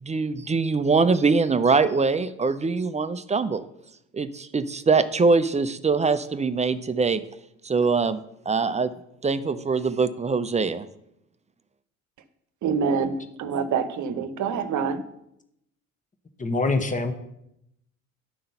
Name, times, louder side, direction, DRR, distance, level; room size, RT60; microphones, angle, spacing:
voice 1, 0.0-3.7 4.1-7.2 7.6-8.9 9.2-10.9, right 4 dB, 20° right, 13 dB, 0.5 m, -23 dB
voice 2, 12.6-15.0, right 6 dB, 55° right, 11 dB, 0.9 m, -26 dB
voice 3, 16.4-17.1, left 3 dB, 20° left, 8 dB, 1.2 m, -24 dB
11.0 x 3.8 x 5.7 m, 0.79 s
hypercardioid pair, 65°, 35 cm